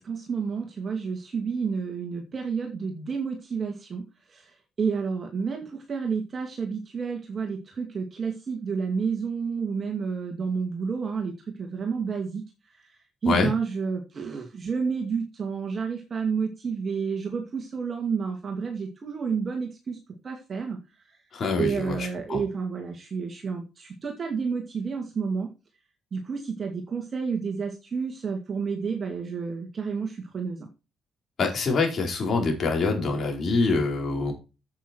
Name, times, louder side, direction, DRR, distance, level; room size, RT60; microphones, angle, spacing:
voice 1, 0.0-4.0 4.3-11.3 11.6-12.4 13.2-20.0 20.2-20.8 21.6-25.5 26.1-30.7, right 5 dB, 40° right, 2 dB, 2.3 m, -30 dB
voice 2, 21.3-22.0 22.3-22.4 31.4-34.3, left 3 dB, 50° left, 1 dB, 4.7 m, -25 dB
9.1 x 8.2 x 4.5 m, 0.29 s
cardioid pair, 90°, 0 cm